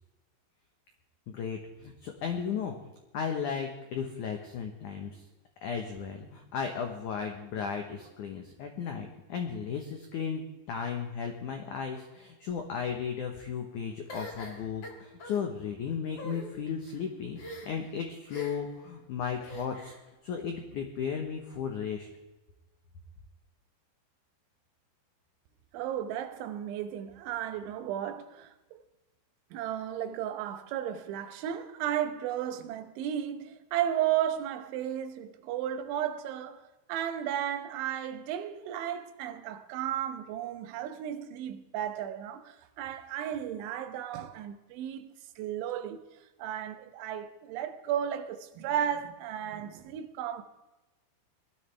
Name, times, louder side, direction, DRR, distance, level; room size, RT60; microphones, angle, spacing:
voice 1, 1.3-2.7 3.1-5.2 5.6-19.9 20.2-22.1, left 6 dB, 80° left, 1.8 m, -35 dB
sound 1, 14.1-15.4 16.1-16.5 17.3-17.9 18.3-18.7 19.4-20.0, left 1 dB, 50° left, 1.4 m, -43 dB
voice 2, 25.7-28.8 29.5-46.0 46.4-50.4, right 10 dB, 85° right, 3.4 m, -34 dB
20.0 x 12.5 x 3.4 m
omnidirectional pair, 5.3 m